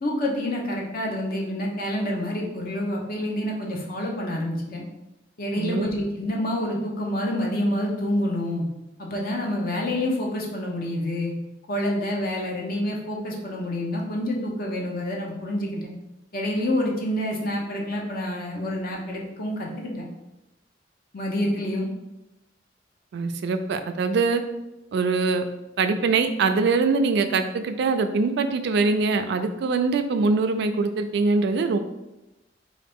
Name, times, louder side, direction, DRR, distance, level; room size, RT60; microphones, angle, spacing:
voice 1, 0.0-4.8 5.4-8.7 9.0-11.3 11.7-15.9 16.3-20.1 21.1-21.9, left 1 dB, 55° left, -1 dB, 0.7 m, -27 dB
voice 2, 5.5-5.9 23.1-24.4 24.9-25.4 25.8-31.8, right 4 dB, 65° right, 8 dB, 0.3 m, -23 dB
3.9 x 2.5 x 3.5 m, 0.95 s
head